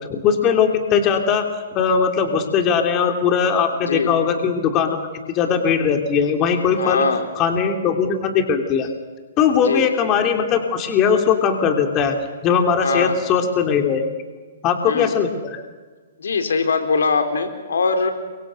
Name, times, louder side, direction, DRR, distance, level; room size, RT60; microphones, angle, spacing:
voice 1, 0.1-5.0 5.3-7.0 7.3-8.9 9.4-12.2 12.4-14.1 14.6-15.6, left 6 dB, 25° left, 5 dB, 3.1 m, -19 dB
voice 2, 6.8-7.3 9.6-9.9 12.8-13.2 14.9-15.1 16.2-18.1, left 4 dB, 85° left, 7 dB, 3.9 m, -21 dB
29.0 x 24.5 x 6.5 m, 1.4 s
hypercardioid pair, 145°, 0 cm